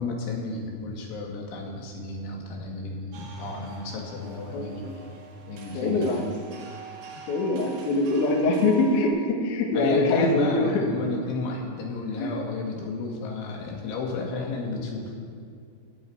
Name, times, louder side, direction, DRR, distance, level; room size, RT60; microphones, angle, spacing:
voice 1, 0.0-4.9 5.5-6.3 9.7-15.1, left 3 dB, 90° left, 0 dB, 4.2 m, -32 dB
sound 1, 3.1-9.1, right 3 dB, 60° right, 2.4 m, -45 dB
voice 2, 4.5-4.9 5.7-6.2 7.3-10.8 12.2-12.4, left 2 dB, 60° left, 1 dB, 2.2 m, -24 dB
17.5 x 9.4 x 4.6 m, 2.3 s
omnidirectional pair, 5.3 m